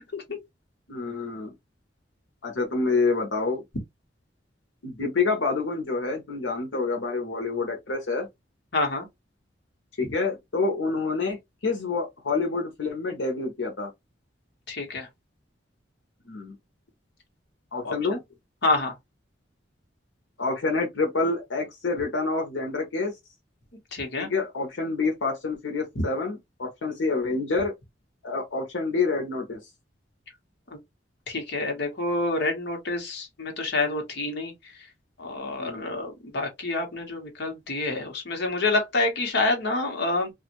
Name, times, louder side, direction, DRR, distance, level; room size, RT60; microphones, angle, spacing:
voice 1, 0.9-1.5 2.4-3.6 4.8-8.3 10.0-11.4 11.6-13.9 16.3-16.6 17.7-18.2 20.4-23.1 24.2-27.7 28.2-29.6 35.6-35.9, left 3 dB, 90° left, 0.8 m, -27 dB
voice 2, 8.7-9.1 14.7-15.1 17.8-17.9 18.6-18.9 23.9-24.3 30.7-30.8 31.3-34.7 35.2-40.3, left 2 dB, 65° left, 1.0 m, -27 dB
2.5 x 2.4 x 2.9 m
head